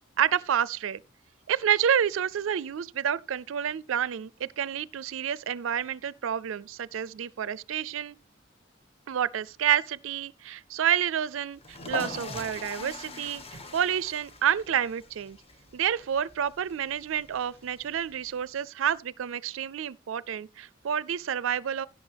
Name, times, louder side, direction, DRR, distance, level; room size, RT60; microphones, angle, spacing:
voice 1, 0.2-1.0 1.5-8.1 9.1-13.4 13.7-15.4 15.7-21.9, right 9 dB, 85° right, 0.4 m, -29 dB
sound 1, 11.6-18.4, left 3 dB, 30° left, 1.6 m, -42 dB
16.0 x 6.5 x 3.4 m
head